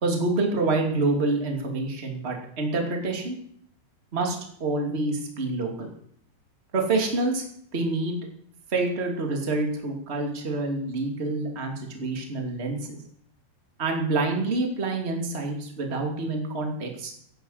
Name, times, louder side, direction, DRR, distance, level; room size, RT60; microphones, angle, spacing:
voice 1, 0.0-3.4 4.1-5.9 6.7-7.4 7.7-8.2 8.7-13.0 13.8-17.1, right 2 dB, 20° right, 1 dB, 1.8 m, -27 dB
17.0 x 8.9 x 8.0 m, 0.67 s
omnidirectional pair, 5.4 m